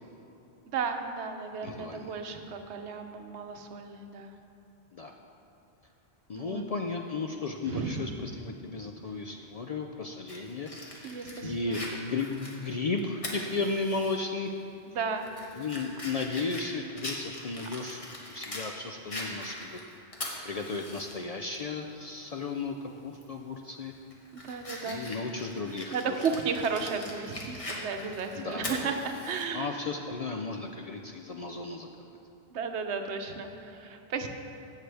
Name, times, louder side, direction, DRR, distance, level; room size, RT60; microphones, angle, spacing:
voice 1, 0.6-4.3 6.3-6.7 7.7-8.1 11.0-11.8 14.9-15.3 24.3-25.1 25.7-29.7 32.5-34.3, right 5 dB, 90° right, 5 dB, 1.0 m, -34 dB
voice 2, 1.6-2.2 4.9-5.1 6.3-10.7 11.4-14.5 15.6-19.8 20.4-22.8 23.0-23.9 24.8-26.3 28.3-28.9 29.5-32.1, left 3 dB, 55° left, 3 dB, 0.4 m, -34 dB
Fire, 10.3-14.2 14.6-14.7 15.2-18.7 19.1-21.1 21.5-21.6 23.1-23.4 23.9-29.5, left 1 dB, 30° left, 1.2 m, -41 dB
15.5 x 6.7 x 3.4 m, 2.9 s
omnidirectional pair, 1.1 m